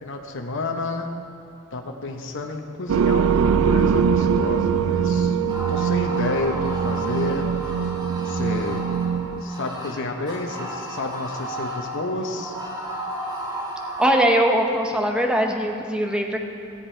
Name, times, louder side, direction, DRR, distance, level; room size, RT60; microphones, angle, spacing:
voice 1, 0.0-1.1 1.7-5.4 5.7-7.5 8.2-8.8 9.4-12.6, left 2 dB, 60° left, 3 dB, 0.9 m, -30 dB
sound 1, 2.9-9.4, right 7 dB, 70° right, 0.3 m, -22 dB
sound 2, 5.5-14.1, equal, 20° right, 1.8 m, -34 dB
voice 2, 14.0-16.4, right 1 dB, 5° right, 2 dB, 0.8 m, -21 dB
16.0 x 7.4 x 4.5 m, 2.6 s
head